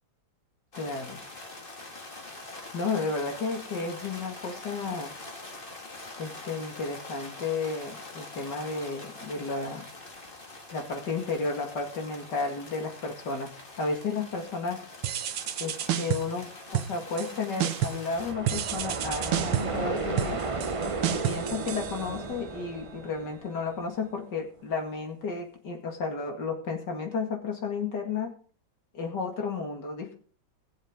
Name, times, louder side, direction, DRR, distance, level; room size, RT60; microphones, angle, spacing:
sound 1, 0.7-18.3, left 2 dB, 30° left, 1.9 m, -44 dB
voice 1, 0.8-1.2 2.7-5.1 6.2-9.9 10.7-14.8 15.6-20.4 21.1-28.3 28.9-30.1, left 4 dB, 60° left, 3 dB, 2.8 m, -33 dB
Dubstep Groove, 15.0-16.4 16.7-17.3 17.6-18.1 18.5-22.5, right 11 dB, 80° right, 1.6 m, -31 dB
sound 2, 18.1-23.9, right 3 dB, 45° right, 0.4 m, -34 dB
19.5 x 7.3 x 3.8 m, 0.43 s
omnidirectional pair, 2.1 m